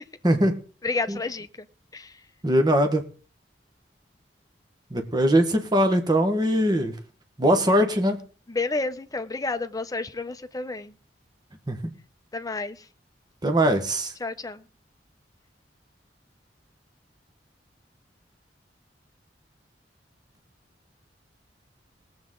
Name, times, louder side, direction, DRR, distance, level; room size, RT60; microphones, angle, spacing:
voice 1, 0.8-1.7 1.9-2.2 8.5-10.9 12.3-12.9 14.2-14.6, left 3 dB, 20° left, 11 dB, 0.7 m, -30 dB
voice 2, 2.4-3.0 4.9-6.9 7.4-8.2 11.7-11.9 13.4-14.1, equal, 25° right, 5 dB, 1.2 m, -21 dB
19.5 x 7.9 x 3.8 m, 0.40 s
head